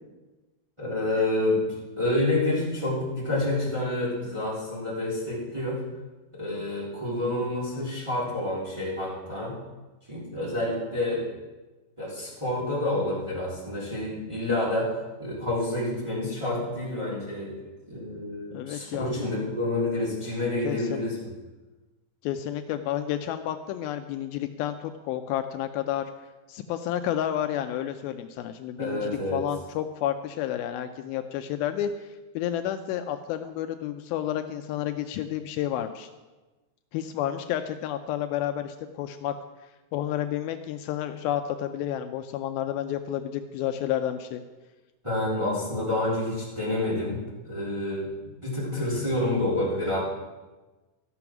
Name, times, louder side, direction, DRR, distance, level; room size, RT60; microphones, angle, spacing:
voice 1, 0.8-1.6 2.0-5.8 6.3-9.6 10.1-11.3 12.0-17.6 17.9-21.3 28.8-29.4 45.0-48.1 48.4-50.0, left 1 dB, 10° right, -7 dB, 3.1 m, -28 dB
voice 2, 18.5-19.3 20.6-21.1 22.2-26.0 26.5-32.1 32.4-36.1 36.9-39.3 39.9-44.4, left 11 dB, 80° left, 8 dB, 2.3 m, -30 dB
14.0 x 6.9 x 5.9 m, 1.2 s
omnidirectional pair, 4.4 m